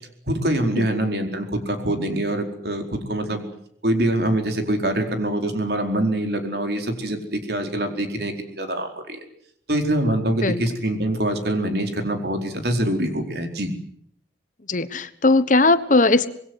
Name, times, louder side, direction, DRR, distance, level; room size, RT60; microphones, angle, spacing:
voice 1, 0.3-3.4 3.8-9.2 9.7-13.7, right 1 dB, 60° right, 5 dB, 4.5 m, -24 dB
voice 2, 14.7-16.3, left 2 dB, 45° left, 13 dB, 1.2 m, -18 dB
26.0 x 21.5 x 8.1 m, 0.67 s
head